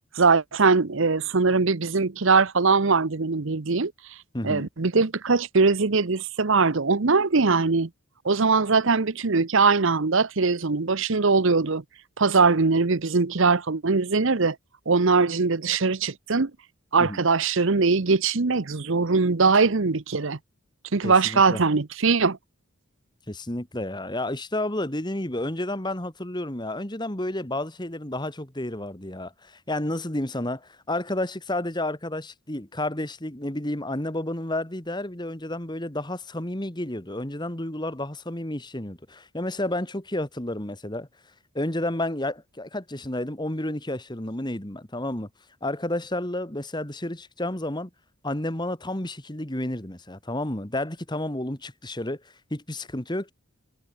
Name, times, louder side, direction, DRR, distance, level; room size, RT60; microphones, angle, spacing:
voice 1, 0.1-3.9 4.4-7.9 8.2-11.8 12.2-14.6 14.9-16.5 16.9-20.4 20.9-22.4, right 4 dB, 60° right, 0.9 m, -21 dB
voice 2, 4.3-4.7 17.0-17.2 21.0-21.6 23.3-41.1 41.5-45.3 45.6-47.9 48.2-52.2 52.5-53.3, left 1 dB, 20° left, 1.9 m, -31 dB
head